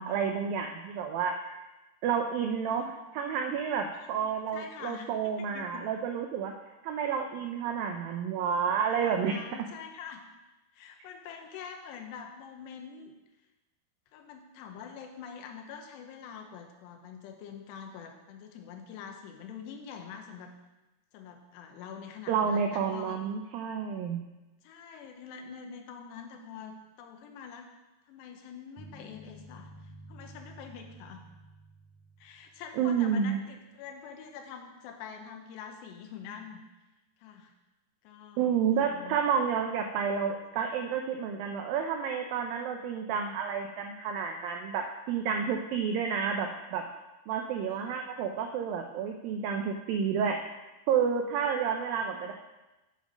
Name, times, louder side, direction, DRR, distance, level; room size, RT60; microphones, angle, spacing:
voice 1, 0.0-1.6 2.0-6.5 6.8-9.4 22.3-24.2 32.8-33.4 38.4-46.8 47.3-50.4 50.9-52.3, right 7 dB, 85° right, 4 dB, 2.0 m, -30 dB
voice 2, 4.0-5.1 5.4-5.9 8.9-10.2 10.7-13.1 14.1-20.6 21.1-23.2 24.6-27.7 28.1-31.2 32.2-36.6 37.2-37.5 38.0-39.2 47.7-48.0, left 7 dB, 90° left, 4 dB, 3.1 m, -45 dB
sound 1, 28.8-33.0, equal, 10° right, 1.1 m, -51 dB
7.5 x 7.1 x 6.1 m, 1.0 s
omnidirectional pair, 4.8 m